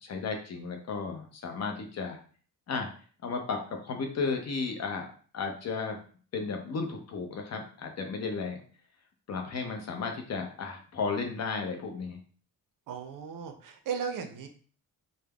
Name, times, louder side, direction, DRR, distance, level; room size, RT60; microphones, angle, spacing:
voice 1, 0.1-2.2 2.7-2.9 3.2-3.6 3.8-5.1 5.3-6.0 6.3-8.6 9.3-12.2, left 4 dB, 50° left, 4 dB, 0.6 m, -34 dB
voice 2, 12.9-14.5, right 6 dB, 70° right, 6 dB, 0.5 m, -36 dB
3.4 x 2.0 x 2.2 m, 0.42 s
cardioid pair, 125°, 34 cm